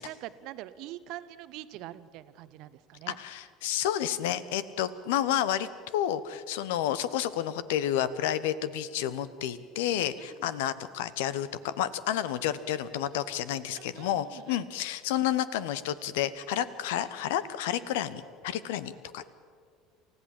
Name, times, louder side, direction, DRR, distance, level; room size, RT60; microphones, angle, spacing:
voice 1, 0.0-3.2 10.2-10.5 13.7-14.6, right 14 dB, 55° right, 14 dB, 1.0 m, -44 dB
voice 2, 3.2-19.3, left 11 dB, 65° left, 16 dB, 1.0 m, -30 dB
28.5 x 15.5 x 7.6 m, 2.1 s
figure-of-eight pair, 65°, 0 cm